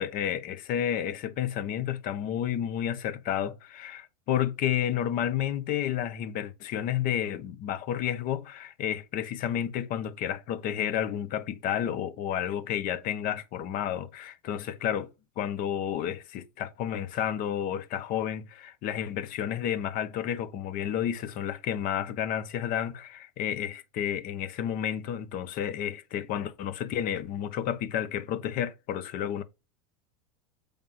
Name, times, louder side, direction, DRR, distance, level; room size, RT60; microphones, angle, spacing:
voice 1, 0.0-15.1 15.4-29.4, left 10 dB, 50° left, 1.0 m, -31 dB
7.5 x 3.5 x 5.6 m
hypercardioid pair, 100°, 19 cm